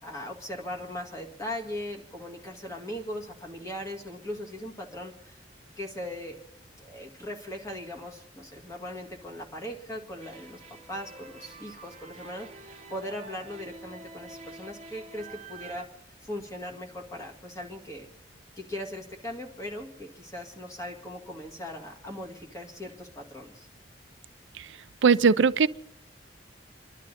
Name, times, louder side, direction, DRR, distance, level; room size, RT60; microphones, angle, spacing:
voice 1, 0.0-5.4 5.8-6.4 6.8-10.6 10.9-15.9 16.2-18.1 18.6-23.7, left 1 dB, 15° left, 2.1 m, -39 dB
sound 1, 10.2-15.9, right 3 dB, 35° right, 1.3 m, -47 dB
voice 2, 25.0-25.7, right 5 dB, 85° right, 0.5 m, -20 dB
28.5 x 11.5 x 4.2 m
head